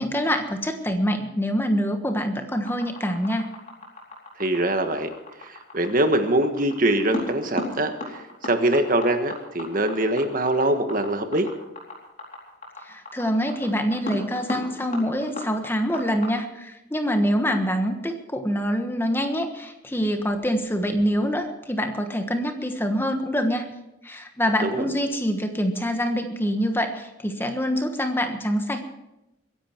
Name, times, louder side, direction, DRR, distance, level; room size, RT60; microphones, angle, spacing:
voice 1, 0.0-3.5 12.8-23.7 24.0-28.8, equal, 10° left, 6 dB, 1.3 m, -25 dB
sound 1, 2.7-16.3, left 1 dB, 40° left, 4.3 m, -35 dB
voice 2, 4.4-5.1 5.4-11.5 24.6-25.0, right 1 dB, 45° right, 7 dB, 1.5 m, -23 dB
23.0 x 11.0 x 4.6 m, 0.93 s
head